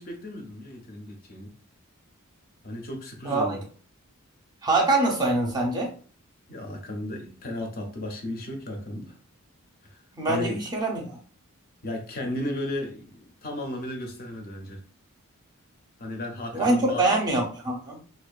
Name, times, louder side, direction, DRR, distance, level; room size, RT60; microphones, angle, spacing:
voice 1, 0.0-1.5 2.6-3.6 6.5-9.2 9.9-10.0 10.3-10.6 11.8-14.8 16.0-17.0, left 1 dB, 40° left, 3 dB, 0.5 m, -34 dB
voice 2, 3.2-3.6 4.6-5.9 10.1-11.2 16.5-18.0, right 2 dB, 20° right, -1 dB, 0.5 m, -24 dB
2.5 x 2.2 x 2.3 m, 0.41 s
head